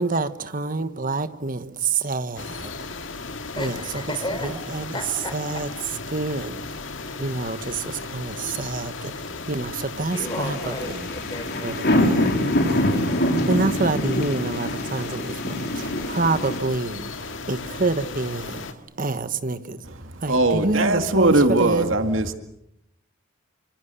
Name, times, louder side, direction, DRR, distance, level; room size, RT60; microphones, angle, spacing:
voice 1, 0.0-2.7 3.5-4.0 4.4-5.0 5.3-5.7 6.1-6.6 7.2-11.1 11.6-12.3 12.5-19.8 20.2-21.9, right 3 dB, 45° right, 11 dB, 1.4 m, -27 dB
sound 1, 2.4-18.7, left 3 dB, 70° left, 2.0 m, -36 dB
voice 2, 3.6-5.6 10.1-11.8, left 1 dB, 25° left, 8 dB, 4.5 m, -34 dB
sound 2, 10.1-16.6, left 1 dB, 55° left, 4.0 m, -25 dB
voice 3, 20.3-22.4, right 2 dB, 75° right, 7 dB, 2.1 m, -20 dB
28.5 x 25.5 x 6.9 m, 0.78 s
head